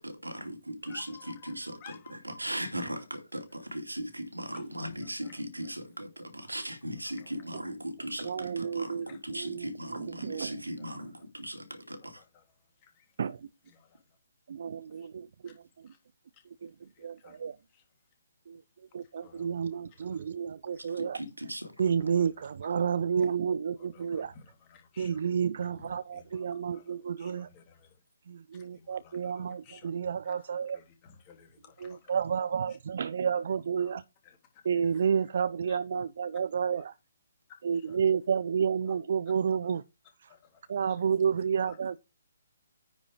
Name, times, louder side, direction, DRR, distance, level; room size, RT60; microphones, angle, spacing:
voice 1, 0.0-1.8 2.1-12.2 21.0-21.7, right 1 dB, 85° right, 2.6 m, -38 dB
voice 2, 0.8-2.2 3.3-3.4 4.5-4.6 5.0-5.7 7.0-7.6 8.6-9.2 10.6-11.1 12.0-12.7 13.7-13.9 14.9-15.1 15.4-15.6 15.8-16.0 16.3-17.4 17.7-17.8 19.0-20.2 20.7-21.0 21.8-22.5 22.8-22.9 23.8-25.4 25.8-26.5 26.7-28.0 28.5-29.9 30.2-30.3 30.7-32.1 33.8-33.9 34.2-35.0 35.7-35.8 36.8-36.9 37.7-38.0 38.9-39.0 39.6-39.8 40.3-40.6 40.9-41.0 41.7-41.8, left 7 dB, 25° left, 3.3 m, -57 dB
voice 3, 8.2-10.6 13.2-13.3 14.5-15.5 16.6-16.7 17.0-17.5 18.9-21.2 21.8-24.3 25.0-27.5 28.3-30.8 31.8-34.0 34.6-36.9 37.6-39.8 40.7-42.0, right 7 dB, 50° right, 0.5 m, -30 dB
10.0 x 5.1 x 4.9 m
figure-of-eight pair, 135°, 0 cm